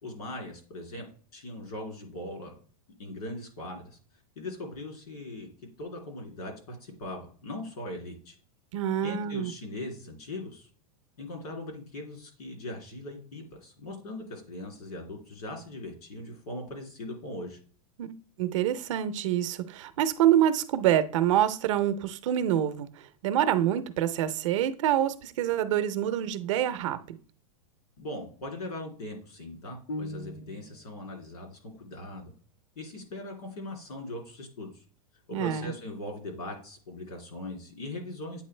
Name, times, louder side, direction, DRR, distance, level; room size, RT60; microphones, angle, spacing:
voice 1, 0.0-1.1 1.3-2.6 3.0-4.0 4.3-5.5 5.8-8.4 9.0-10.7 11.2-17.6 28.0-32.3 32.7-34.8 35.3-38.4, left 1 dB, 85° left, 2.9 m, -40 dB
voice 2, 8.7-9.5 18.0-18.1 18.4-22.9 23.2-27.2 35.3-35.7, right 11 dB, 55° right, 0.6 m, -26 dB
sound 1, 29.9-30.9, left 1 dB, 60° left, 0.6 m, -38 dB
8.4 x 3.8 x 3.2 m
supercardioid pair, 160°, 19 cm